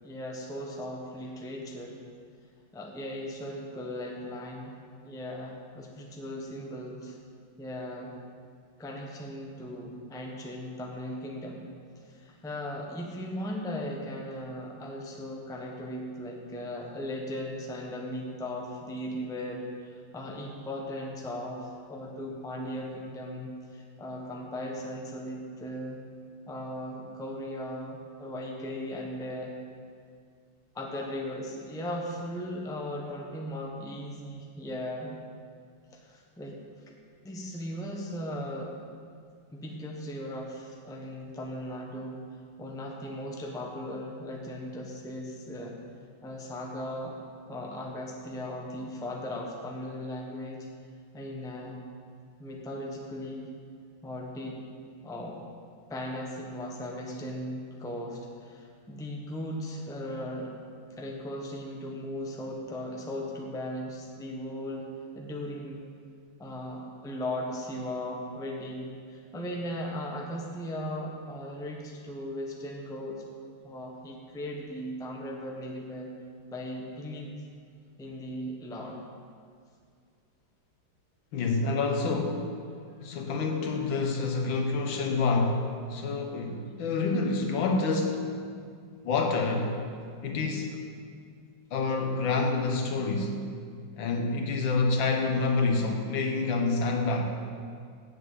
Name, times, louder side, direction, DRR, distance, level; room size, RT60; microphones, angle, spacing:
voice 1, 0.0-2.0 2.7-4.7 5.0-7.2 7.6-8.2 8.8-11.6 12.0-26.0 26.5-29.5 30.7-35.2 35.9-36.6 36.9-37.0 37.2-38.8 39.5-42.2 42.6-45.8 46.2-47.2 47.5-50.7 51.1-51.8 52.4-53.5 54.0-54.6 55.0-55.4 55.9-60.6 61.0-64.9 65.1-65.9 66.4-73.2 73.6-76.1 76.5-77.3 78.0-79.0, left 1 dB, 5° left, -1 dB, 0.7 m, -37 dB
voice 2, 81.3-82.7 83.0-88.4 89.0-89.8 90.2-90.8 91.7-93.5 94.0-97.2, left 3 dB, 80° left, 3 dB, 1.8 m, -28 dB
8.0 x 7.4 x 8.1 m, 2.1 s
omnidirectional pair, 2.1 m